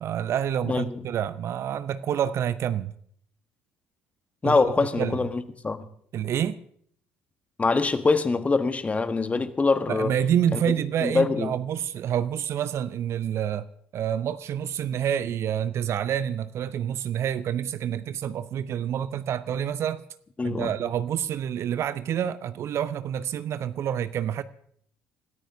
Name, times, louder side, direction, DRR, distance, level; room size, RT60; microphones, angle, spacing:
voice 1, 0.0-2.9 4.4-5.2 6.1-6.6 9.9-13.7 13.9-20.0 20.4-24.4, right 9 dB, 50° right, 0.6 m, -28 dB
voice 2, 0.7-1.0 4.4-5.9 7.6-10.1 10.5-10.7 11.0-11.6 20.4-20.7, left 3 dB, 25° left, 1.3 m, -24 dB
28.5 x 14.0 x 2.7 m
figure-of-eight pair, 55°, 6 cm